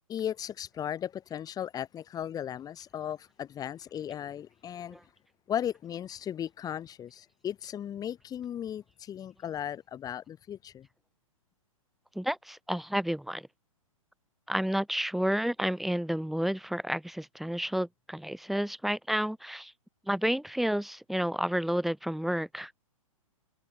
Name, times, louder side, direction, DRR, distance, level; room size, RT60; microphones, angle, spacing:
voice 1, 0.1-5.0 5.5-10.9, left 10 dB, 20° left, 4.4 m, -36 dB
voice 2, 12.2-13.5 14.5-19.7 20.1-22.7, equal, ahead, 5.2 m, -30 dB
hypercardioid pair, 120°, 18 cm